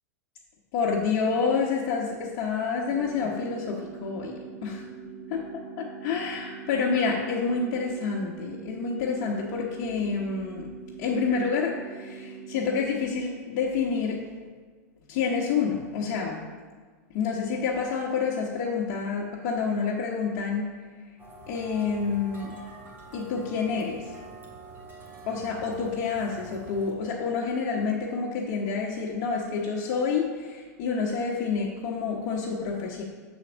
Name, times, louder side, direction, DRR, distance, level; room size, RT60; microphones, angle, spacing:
voice 1, 0.7-4.8 5.3-5.4 6.0-10.7 11.0-14.2 15.1-16.4 17.1-20.7 21.5-22.5 23.1-24.2 25.3-33.0, left 5 dB, 55° left, -3 dB, 1.0 m, -28 dB
sound 1, 2.9-12.9, right 6 dB, 65° right, 0.8 m, -42 dB
sound 2, 21.2-26.9, right 2 dB, 25° right, 2.0 m, -45 dB
6.7 x 4.4 x 6.1 m, 1.5 s
hypercardioid pair, 115°, 9 cm